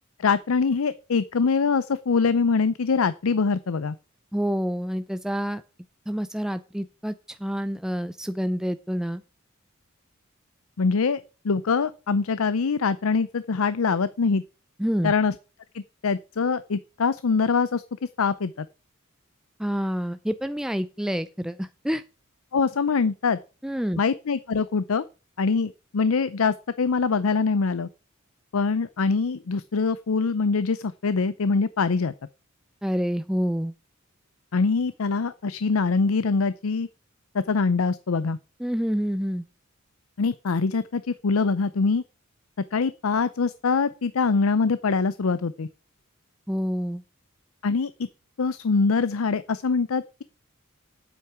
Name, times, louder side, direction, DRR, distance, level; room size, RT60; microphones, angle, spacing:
voice 1, 0.2-4.0 10.8-14.4 15.0-15.3 15.7-17.8 18.2-18.7 22.5-23.4 24.0-25.0 25.4-27.9 28.5-32.1 34.5-36.9 37.3-38.4 40.2-42.0 42.7-45.7 47.6-47.9 48.4-50.2, left 4 dB, 80° left, 15 dB, 0.6 m, -24 dB
voice 2, 4.3-5.6 6.1-9.2 14.8-15.1 19.6-22.0 23.6-24.0 32.8-33.7 38.6-39.5 46.5-47.0, equal, 5° right, 11 dB, 0.4 m, -28 dB
8.6 x 8.3 x 5.9 m, 0.33 s
head